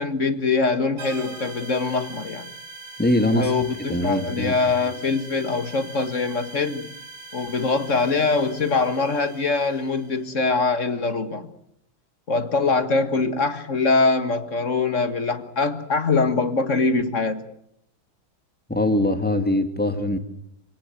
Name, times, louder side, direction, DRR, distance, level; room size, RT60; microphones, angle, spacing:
voice 1, 0.0-2.5 3.3-6.9 7.3-11.5 12.3-17.4, left 3 dB, 40° left, 10 dB, 1.9 m, -23 dB
sound 1, 1.0-10.4, right 3 dB, 85° right, 5.1 m, -42 dB
voice 2, 3.0-3.5 3.9-4.6 18.7-20.2, left 1 dB, 5° left, 7 dB, 2.2 m, -22 dB
27.0 x 18.0 x 7.8 m, 0.76 s
omnidirectional pair, 2.2 m